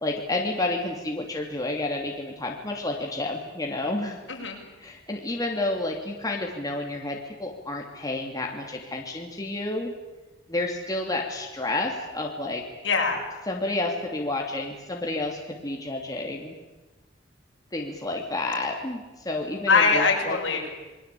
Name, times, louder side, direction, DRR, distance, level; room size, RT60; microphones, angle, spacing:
voice 1, 0.0-4.2 4.8-9.9 10.5-12.6 13.5-16.5 17.7-20.4, left 2 dB, 20° left, 0 dB, 2.8 m, -30 dB
voice 2, 12.8-13.2 19.7-20.7, left 4 dB, 70° left, 0 dB, 6.7 m, -22 dB
28.5 x 21.5 x 8.5 m, 1.1 s
head